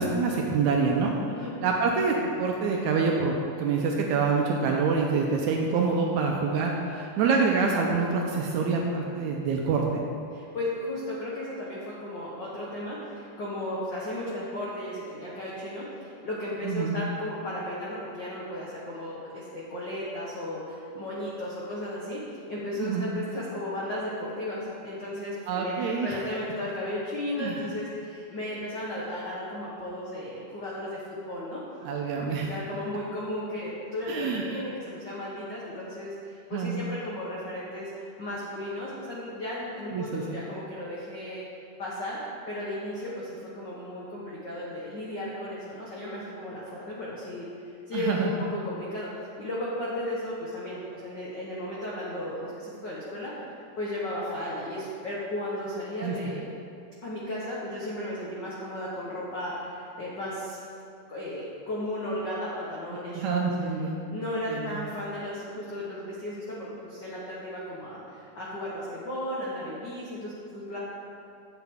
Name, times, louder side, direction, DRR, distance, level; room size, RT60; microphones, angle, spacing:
voice 1, 0.0-1.1 1.6-10.0 16.6-17.0 22.8-23.1 25.5-26.2 27.4-27.6 31.9-32.5 34.1-34.6 36.5-36.8 39.9-40.2 47.9-48.3 56.0-56.2 63.1-64.0 64.5-64.8, right 4 dB, 75° right, 0 dB, 1.7 m, -26 dB
voice 2, 10.3-31.6 32.2-41.4 41.8-42.2 42.5-49.1 49.4-53.3 53.8-56.4 57.0-60.6 61.1-63.7 64.1-70.8, left 1 dB, 85° left, -7 dB, 0.9 m, -35 dB
9.0 x 7.8 x 3.5 m, 2.5 s
omnidirectional pair, 3.8 m